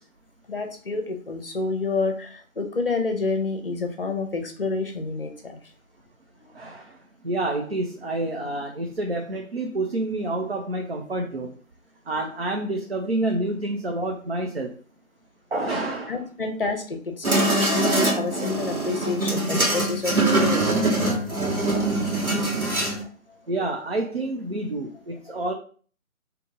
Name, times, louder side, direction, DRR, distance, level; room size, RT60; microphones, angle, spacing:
voice 1, 0.5-5.6 16.1-21.2 22.0-22.1 23.0-23.4, left 3 dB, 40° left, 5 dB, 0.8 m, -29 dB
voice 2, 6.5-7.0 7.2-11.5 12.1-14.7 15.5-16.2 23.5-25.5, right 2 dB, 45° right, 2 dB, 0.6 m, -28 dB
sound 1, 17.2-23.0, right 2 dB, 85° right, 1.6 m, -23 dB
3.7 x 2.9 x 3.7 m, 0.42 s
figure-of-eight pair, 160°, 42 cm